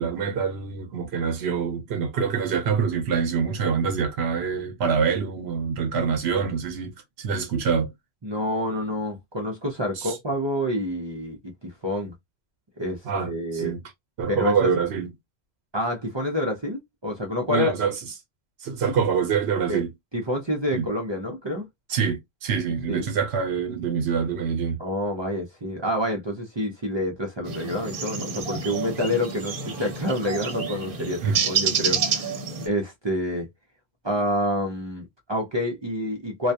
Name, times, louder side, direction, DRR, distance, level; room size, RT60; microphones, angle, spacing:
voice 1, 0.0-7.9 10.0-10.2 13.0-13.8 14.2-15.1 17.5-17.9 18.6-19.9 20.7-20.9 21.9-24.8 31.2-31.4, right 6 dB, 90° right, 0.9 m, -25 dB
voice 2, 8.2-12.1 12.8-13.7 14.3-14.7 15.7-17.7 19.7-19.8 20.1-21.6 22.9-23.0 24.8-32.4 32.6-33.5 34.0-36.5, left 1 dB, 35° right, 0.5 m, -28 dB
sound 1, 27.5-32.7, right 6 dB, 60° right, 0.9 m, -28 dB
2.3 x 2.2 x 2.6 m
omnidirectional pair, 1.1 m